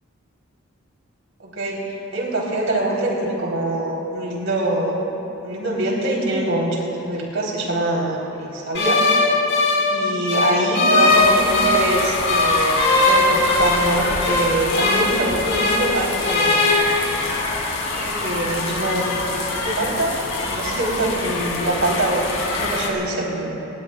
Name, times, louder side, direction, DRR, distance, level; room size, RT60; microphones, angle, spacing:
voice 1, 1.4-1.8 2.1-5.1 5.4-9.0 9.9-16.7 17.9-20.1 20.5-23.5, right 1 dB, 70° right, -3 dB, 4.1 m, -24 dB
sound 1, 8.7-11.9 12.3-15.9 16.2-16.7, left 2 dB, 55° left, 3.3 m, -19 dB
sound 2, 11.1-22.9, left 3 dB, 90° left, 2.9 m, -26 dB
27.5 x 19.5 x 2.5 m, 2.9 s
head